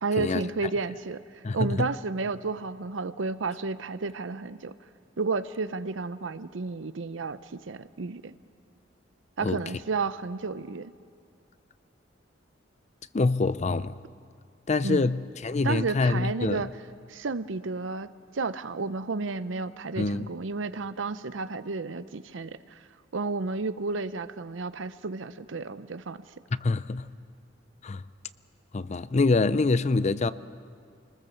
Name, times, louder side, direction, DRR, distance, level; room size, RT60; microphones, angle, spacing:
voice 1, 0.0-4.7 5.2-8.3 9.4-10.9 14.8-15.1 15.6-16.7 17.1-18.1 18.3-22.8 23.1-26.2, right 3 dB, 85° right, 0.7 m, -32 dB
voice 2, 1.4-1.9 9.4-9.6 13.1-14.0 14.7-16.6 20.0-20.3 26.6-27.1 27.8-28.0 28.7-30.3, left 3 dB, 35° left, 0.5 m, -25 dB
25.5 x 20.0 x 7.1 m
head